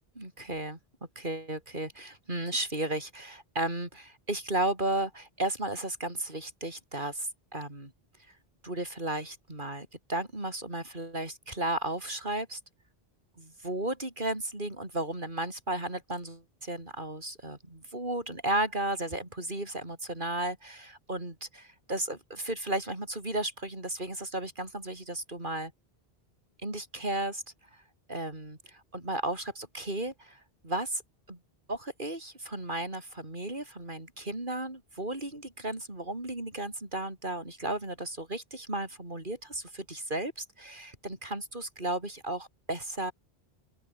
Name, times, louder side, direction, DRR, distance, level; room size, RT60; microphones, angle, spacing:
voice 1, 0.2-0.8 1.2-7.9 8.6-12.6 13.4-25.7 26.6-27.4 27.7-27.8 28.1-31.0 31.3-31.4 31.7-43.1, right 1 dB, 55° right, 5.3 m, -34 dB
open air
omnidirectional pair, 1.0 m